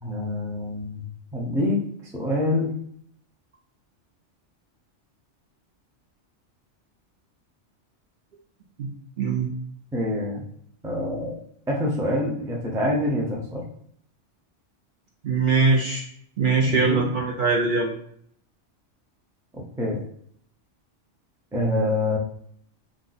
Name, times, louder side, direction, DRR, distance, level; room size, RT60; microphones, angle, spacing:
voice 1, 0.0-1.0 1.3-1.8 2.1-2.8 9.9-10.4 10.8-13.7 16.6-17.1 19.8-20.0 21.5-22.2, left 1 dB, 5° right, -2 dB, 0.3 m, -26 dB
voice 2, 9.2-9.5 15.2-16.0 16.4-17.9, right 4 dB, 55° right, -2 dB, 0.6 m, -22 dB
2.5 x 2.3 x 3.9 m, 0.66 s
omnidirectional pair, 1.2 m